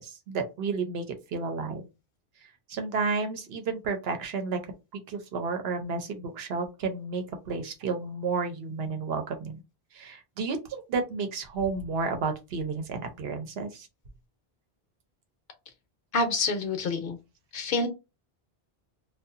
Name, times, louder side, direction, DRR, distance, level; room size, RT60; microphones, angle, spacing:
voice 1, 0.0-1.8 2.7-4.6 4.9-9.6 9.9-13.9, right 4 dB, 70° right, 5 dB, 0.9 m, -31 dB
voice 2, 16.1-17.2 17.5-17.9, left 3 dB, 60° left, 7 dB, 0.8 m, -27 dB
2.7 x 2.3 x 2.4 m, 0.26 s
omnidirectional pair, 1.1 m